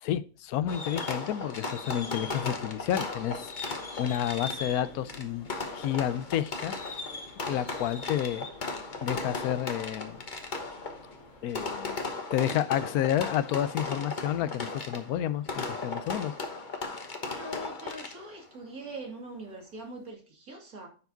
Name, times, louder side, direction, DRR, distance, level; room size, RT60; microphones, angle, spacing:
voice 1, 0.0-3.5 4.0-5.5 5.7-6.7 7.5-8.5 9.0-10.2 11.4-12.0 12.3-16.3, left 11 dB, 85° left, 16 dB, 1.1 m, -30 dB
Fireworks, 0.7-18.4, left 3 dB, 35° left, 1.2 m, -36 dB
sound 1, 4.4-11.7, left 1 dB, 60° left, 3.0 m, -55 dB
voice 2, 14.4-14.7 17.3-20.9, right 1 dB, 75° right, 1 dB, 3.0 m, -43 dB
10.5 x 4.8 x 3.9 m, 0.37 s
omnidirectional pair, 1.5 m